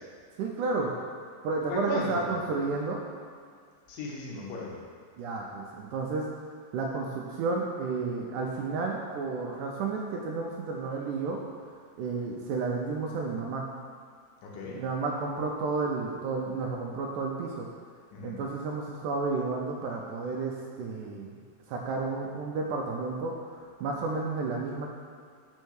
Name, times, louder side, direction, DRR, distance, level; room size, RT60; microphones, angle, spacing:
voice 1, 0.4-0.9 1.4-3.0 5.2-6.3 6.7-11.4 12.0-13.7 14.7-17.7 18.2-21.3 21.7-23.4 23.8-24.9, right 4 dB, 80° right, -1 dB, 1.9 m, -31 dB
voice 2, 1.7-2.3 3.9-4.7 14.4-14.8 18.1-18.4, left 2 dB, 75° left, -3 dB, 2.6 m, -35 dB
5.4 x 4.6 x 6.2 m, 2.1 s
omnidirectional pair, 4.0 m